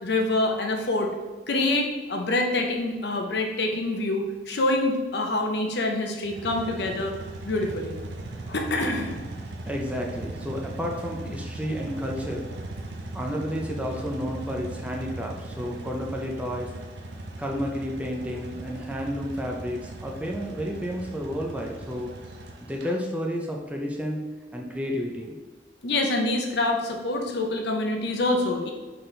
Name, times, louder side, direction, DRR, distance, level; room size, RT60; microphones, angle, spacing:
voice 1, 0.0-1.1 1.5-7.1 7.4-7.9 8.5-9.1 25.8-28.7, left 2 dB, 65° left, 2 dB, 0.7 m, -26 dB
sound 1, 6.2-22.9, right 2 dB, 75° right, 0.6 m, -38 dB
voice 2, 9.6-12.5 13.1-16.7 17.4-22.1 22.6-24.2 24.5-25.4, equal, 5° right, 0 dB, 0.4 m, -31 dB
4.1 x 3.9 x 3.2 m, 1.4 s
head